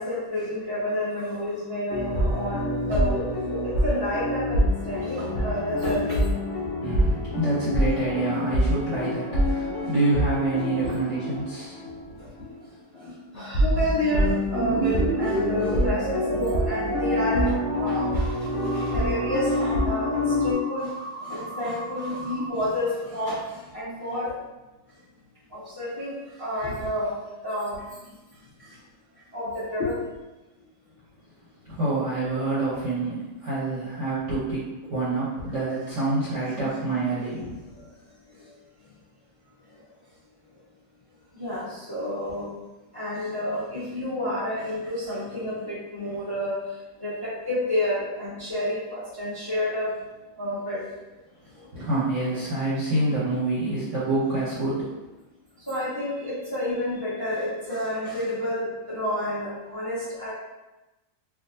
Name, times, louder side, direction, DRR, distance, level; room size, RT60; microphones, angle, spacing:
voice 1, 0.0-4.6 4.8-6.2 9.0-9.1 9.4-9.9 10.8-10.9 12.2-12.3 12.9-24.3 25.5-27.1 27.4-28.0 28.6-28.8 29.3-30.0 36.4-36.8 37.7-37.8 38.4-38.5 41.3-42.5 42.9-49.9 50.4-50.8 51.5-51.7 55.7-60.3, left 1 dB, 15° left, -11 dB, 1.1 m, -30 dB
sound 1, 1.9-12.1 12.3-12.5 13.3-20.5, left 1 dB, 80° left, 0.6 m, -26 dB
voice 2, 6.8-12.2 31.6-37.6 51.7-54.9, right 2 dB, 50° right, -9 dB, 1.0 m, -27 dB
sound 2, 14.6-22.5, right 3 dB, 90° right, 1.3 m, -33 dB
3.5 x 2.5 x 2.6 m, 1.1 s
omnidirectional pair, 1.9 m